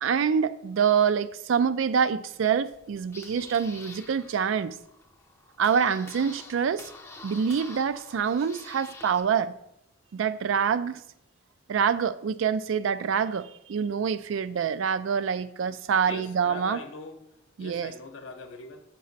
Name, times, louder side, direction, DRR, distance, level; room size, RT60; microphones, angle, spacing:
voice 1, 0.0-4.8 5.6-6.9 7.2-9.5 10.1-11.0 11.7-16.8 17.6-17.9, right 7 dB, 85° right, 0.4 m, -26 dB
sound 1, 2.7-9.2, left 3 dB, 15° left, 0.5 m, -47 dB
voice 2, 16.1-17.2 17.6-18.8, left 4 dB, 75° left, 0.7 m, -41 dB
6.6 x 5.1 x 4.0 m
head